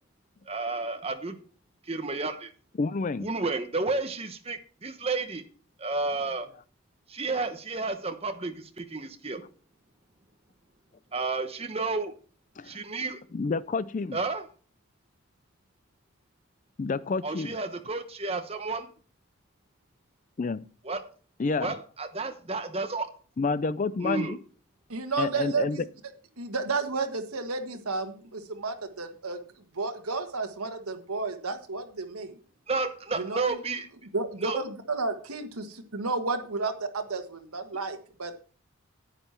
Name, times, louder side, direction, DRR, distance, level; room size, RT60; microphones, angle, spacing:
voice 1, 0.5-1.4 1.9-2.5 3.2-5.4 5.8-6.5 7.1-9.4 11.1-12.1 12.6-13.2 14.1-14.4 17.2-18.9 20.8-21.0 21.6-23.1 24.0-24.4 32.7-33.9 34.4-34.6, right 3 dB, 25° right, 7 dB, 1.0 m, -31 dB
voice 2, 2.8-3.3 12.6-12.8 13.3-14.2 16.8-17.6 20.4-20.6 21.4-21.7 23.4-24.4 25.2-25.8, left 4 dB, 35° left, 17 dB, 0.4 m, -29 dB
voice 3, 24.9-25.8 26.4-29.4 29.7-32.4 33.1-33.6 34.1-38.3, right 3 dB, 80° right, 6 dB, 1.5 m, -32 dB
9.9 x 9.0 x 4.4 m, 0.39 s
head